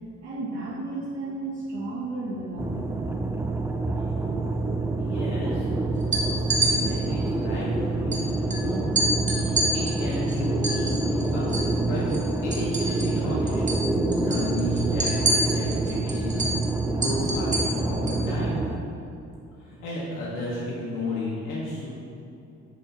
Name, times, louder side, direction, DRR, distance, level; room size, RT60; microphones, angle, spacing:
voice 1, 0.0-3.0, right 2 dB, 60° right, -9 dB, 1.6 m, -33 dB
sound 1, 2.6-18.8, right 2 dB, 10° right, 0.4 m, -27 dB
voice 2, 3.9-4.3 5.0-5.7 6.3-8.9 9.4-12.0 12.4-13.6 14.2-16.6 16.9-18.6 19.6-21.9, left 1 dB, 90° left, -7 dB, 1.4 m, -33 dB
sound 2, 6.0-6.7 8.1-8.2 8.5-8.6 9.0-11.7 12.0-13.2 13.5-13.8 14.1-18.2, right 2 dB, 25° right, 1.3 m, -27 dB
9.8 x 3.5 x 4.4 m, 2.7 s
cardioid pair, 90°, 30 cm